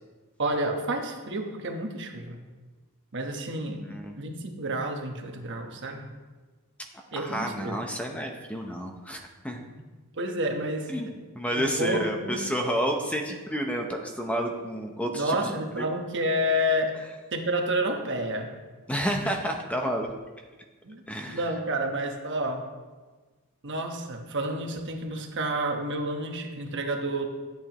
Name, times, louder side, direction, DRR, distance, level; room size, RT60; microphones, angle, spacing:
voice 1, 0.4-2.4 3.1-3.8 4.2-6.1 7.1-7.8 9.7-9.8 10.1-10.9 11.5-12.4 15.1-17.0 17.3-18.5 20.8-22.7 23.6-27.3, right 1 dB, 55° right, 3 dB, 1.1 m, -30 dB
voice 2, 7.2-9.7 10.9-11.1 11.3-15.9 18.9-20.1 21.1-21.4, equal, 5° left, 2 dB, 0.7 m, -30 dB
13.0 x 8.8 x 3.0 m, 1.3 s
head